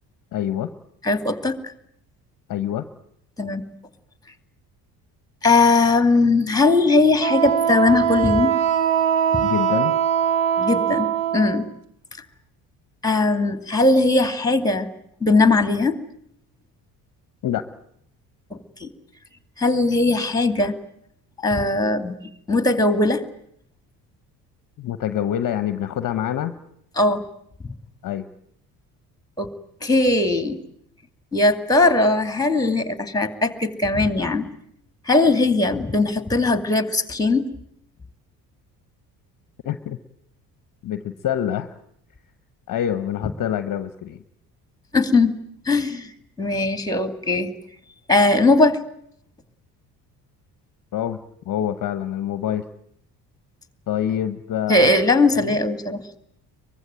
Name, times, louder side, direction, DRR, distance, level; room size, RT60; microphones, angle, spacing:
voice 1, 0.3-0.7 2.5-2.9 9.4-9.9 17.4-17.6 24.8-26.5 28.0-28.3 39.6-40.0 40.8-41.7 42.7-44.2 50.9-51.2 51.4-52.6 53.9-55.0 55.3-55.6, left 10 dB, 40° left, 12 dB, 1.1 m, -26 dB
voice 2, 1.0-1.6 3.4-3.7 5.4-8.6 9.3-9.4 10.6-11.7 13.0-14.9 15.2-16.0 18.5-18.9 19.6-20.7 21.4-22.2 22.5-23.2 27.0-27.2 29.4-29.5 29.8-30.6 31.3-34.5 35.1-37.5 44.9-45.3 45.7-46.1 46.4-47.5 48.1-48.8 54.7-56.0, left 2 dB, 10° left, 9 dB, 2.4 m, -19 dB
Wind instrument woodwind instrument, 7.2-11.6, right 8 dB, 65° right, 2.1 m, -21 dB
23.5 x 21.0 x 9.2 m, 0.72 s
figure-of-eight pair, 55°, 48 cm